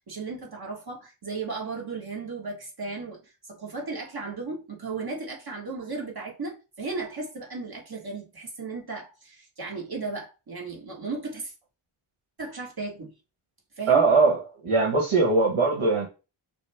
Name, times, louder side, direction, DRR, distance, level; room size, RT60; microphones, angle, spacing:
voice 1, 0.0-11.5 12.4-13.1 13.8-14.1, right 3 dB, 50° right, 1.7 m, -35 dB
voice 2, 13.9-16.1, right 4 dB, 75° right, 1.5 m, -21 dB
6.0 x 2.2 x 3.5 m
wide cardioid pair, 100°, 49 cm